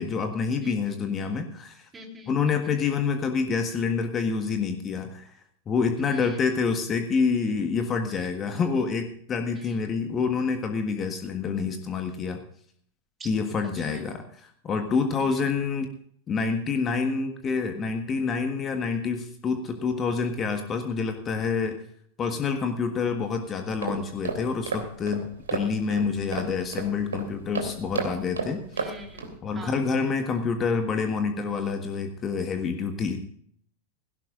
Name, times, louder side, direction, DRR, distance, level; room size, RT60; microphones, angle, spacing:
voice 1, 0.0-1.9 2.3-5.3 5.7-12.4 13.2-15.9 16.3-21.8 22.2-28.8 29.4-33.2, left 5 dB, 25° left, 6 dB, 1.5 m, -27 dB
voice 2, 0.6-0.9 1.9-2.8 6.0-6.5 9.5-9.8 13.2-13.3 13.9-14.1 15.2-15.5 28.7-29.3 29.5-29.8, right 1 dB, 15° right, 2 dB, 3.6 m, -44 dB
sound 1, 23.6-29.4, right 4 dB, 70° right, 3.0 m, -34 dB
17.5 x 16.5 x 2.5 m, 0.62 s
figure-of-eight pair, 90°, 0 cm